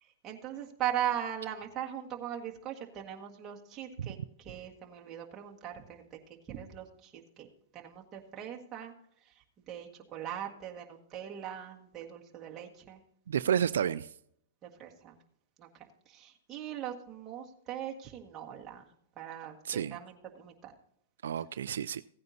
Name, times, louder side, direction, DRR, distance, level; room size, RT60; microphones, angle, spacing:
voice 1, 0.0-6.2 6.5-7.5 7.7-8.9 9.2-13.0 14.6-15.2 15.6-18.9 19.2-20.7, right 10 dB, 20° right, 1.7 m, -40 dB
voice 2, 13.3-14.1 19.7-20.0 21.2-22.0, right 9 dB, 80° right, 0.3 m, -30 dB
16.5 x 9.4 x 2.8 m
hypercardioid pair, 150°, 0 cm